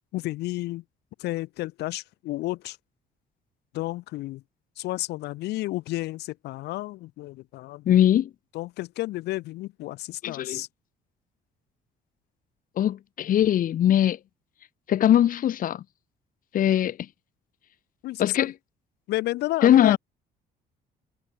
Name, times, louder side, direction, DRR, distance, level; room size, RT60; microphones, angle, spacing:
voice 1, 0.1-0.8 1.2-2.8 3.7-4.4 4.8-7.9 8.5-10.7 18.0-18.5 19.1-20.0, left 18 dB, 80° left, 1.8 m, -31 dB
voice 2, 7.9-8.3 10.2-10.6 12.8-14.2 14.9-15.8 16.5-17.0 18.2-18.5 19.6-20.0, left 11 dB, 55° left, 1.5 m, -20 dB
cardioid pair, 110°, 17 cm